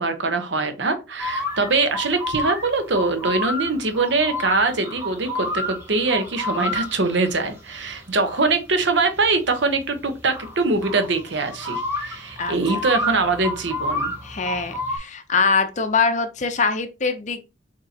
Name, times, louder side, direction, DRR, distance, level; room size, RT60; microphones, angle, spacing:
voice 1, 0.0-14.1, right 3 dB, 65° right, 0.9 m, -23 dB
sound 1, 1.2-15.0, left 1 dB, 10° right, 1.2 m, -30 dB
voice 2, 12.4-12.8 14.2-17.5, left 4 dB, 40° left, 0.6 m, -23 dB
6.4 x 2.9 x 2.8 m
head